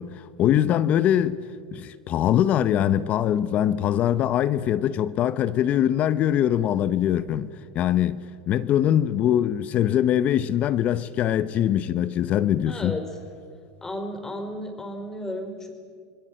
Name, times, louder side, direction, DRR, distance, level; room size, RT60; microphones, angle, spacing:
voice 1, 0.0-1.4 1.7-8.2 8.5-13.0, left 11 dB, 40° left, 0.8 m, -22 dB
voice 2, 12.7-13.0 13.8-15.7, left 1 dB, 15° left, 4.5 m, -33 dB
28.0 x 20.5 x 7.7 m
supercardioid pair, 115°, 4 cm